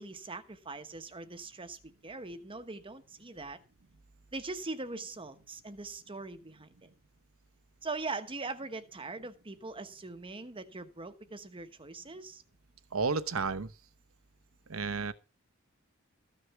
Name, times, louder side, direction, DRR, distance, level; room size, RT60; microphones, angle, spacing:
voice 1, 0.0-3.6 4.3-6.9 7.8-12.4, right 3 dB, 25° right, 1.1 m, -41 dB
voice 2, 12.9-13.7 14.7-15.1, right 4 dB, 80° right, 1.0 m, -31 dB
14.5 x 6.6 x 5.9 m
head